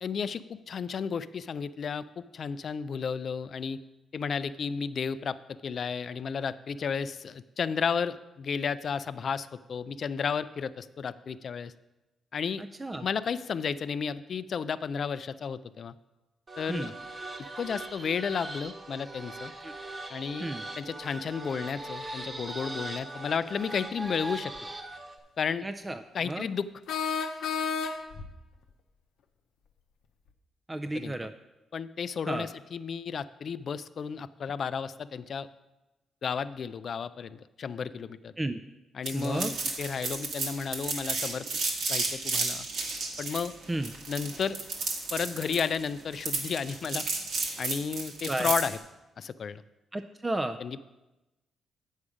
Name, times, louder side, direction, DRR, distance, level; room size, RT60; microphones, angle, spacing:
voice 1, 0.0-3.8 4.1-11.7 12.3-12.6 13.0-15.9 16.6-16.9 17.6-19.5 20.1-20.5 20.8-24.5 25.4-25.7 26.1-26.7 30.9-31.1 31.7-35.5 36.2-38.3 39.0-41.5 41.9-42.7 43.2-43.5 44.1-44.6 45.1-47.1 47.6-48.8 49.2-49.6 50.6-50.8, left 6 dB, 55° left, 15 dB, 0.3 m, -33 dB
voice 2, 12.6-13.1 16.7-16.9 19.6-19.7 20.4-20.6 25.6-26.5 30.7-31.3 32.3-32.5 38.4-38.6 39.1-39.5 43.7-43.9 48.3-48.5 49.9-50.6, right 1 dB, 20° right, 7 dB, 0.4 m, -33 dB
sound 1, 16.5-25.2, right 2 dB, 35° right, 1.2 m, -40 dB
sound 2, 24.6-24.7 26.9-28.3, left 6 dB, 85° left, 0.7 m, -31 dB
sound 3, 39.1-48.8, right 3 dB, 80° right, 1.6 m, -32 dB
8.4 x 6.3 x 4.9 m, 1.0 s
cardioid pair, 75°, 0 cm